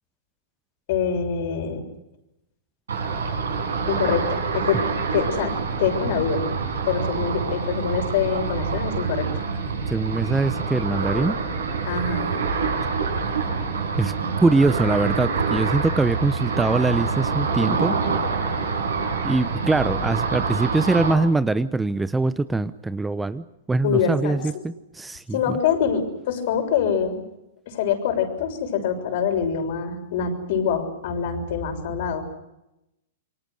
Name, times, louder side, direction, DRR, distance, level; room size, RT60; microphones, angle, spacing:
voice 1, 0.9-1.8 3.9-4.8 5.1-6.5 6.8-9.4 11.8-12.3 23.8-24.6 25.3-27.2 27.7-32.2, left 7 dB, 55° left, 6 dB, 6.6 m, -25 dB
Ocean, 2.9-21.1, right 5 dB, 75° right, 7.7 m, -26 dB
voice 2, 9.9-11.4 14.0-14.1 14.4-18.0 19.2-25.6, right 3 dB, 10° right, 15 dB, 0.8 m, -23 dB
28.0 x 24.0 x 6.5 m, 0.90 s
hypercardioid pair, 110°, 0 cm